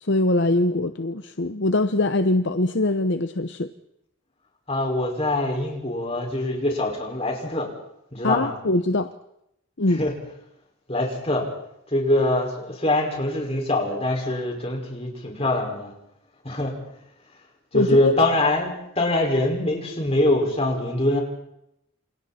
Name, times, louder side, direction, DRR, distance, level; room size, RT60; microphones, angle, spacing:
voice 1, 0.0-3.7 8.2-9.1 9.8-10.0 17.7-18.1, left 2 dB, 60° left, 8 dB, 0.9 m, -22 dB
voice 2, 4.7-7.7 8.1-8.5 10.0-10.1 10.9-11.5 11.9-15.9 16.4-16.7 17.7-21.2, left 1 dB, 30° left, 0 dB, 5.5 m, -23 dB
28.5 x 27.5 x 4.4 m, 0.80 s
head